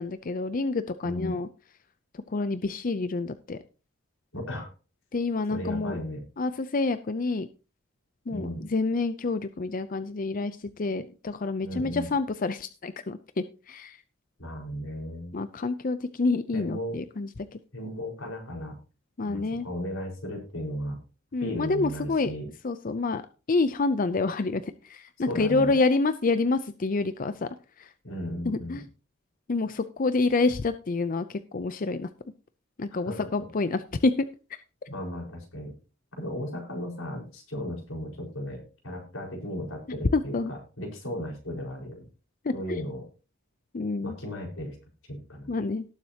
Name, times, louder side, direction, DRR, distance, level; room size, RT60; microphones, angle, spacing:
voice 1, 0.0-1.5 2.3-3.6 5.1-6.0 6.4-7.5 8.3-14.0 15.3-17.6 19.2-19.6 21.3-22.3 22.6-23.2 23.5-27.5 27.8-27.9 28.4-28.8 29.5-32.1 32.8-34.3 40.1-40.5 42.4-42.9 43.7-44.2 45.5-45.8, left 3 dB, 45° left, 12 dB, 0.5 m, -28 dB
voice 2, 1.0-1.4 4.3-4.7 5.5-6.2 8.3-8.6 11.6-12.1 14.4-15.4 16.5-17.0 17.7-18.8 19.2-21.0 21.4-22.5 25.2-25.7 28.0-28.8 33.1-33.3 34.9-35.7 36.2-42.1 42.5-43.0 44.0-44.8 45.1-45.5, equal, 85° left, 0 dB, 4.8 m, -35 dB
18.5 x 7.5 x 2.9 m, 0.33 s
head